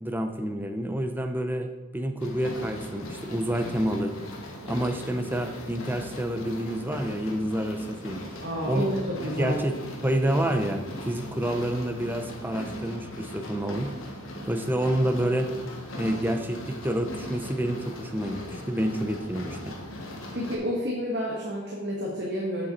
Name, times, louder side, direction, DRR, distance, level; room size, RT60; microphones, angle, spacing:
voice 1, 0.0-4.2 4.6-8.2 8.7-8.9 9.4-9.7 10.0-13.9 14.4-15.5 15.9-19.8, right 1 dB, 10° right, 5 dB, 0.5 m, -28 dB
sound 1, 2.2-20.6, left 1 dB, 70° left, 1.3 m, -39 dB
voice 2, 8.4-9.6 20.3-22.7, equal, 50° right, -3 dB, 1.3 m, -30 dB
7.6 x 7.2 x 4.1 m, 1.2 s
head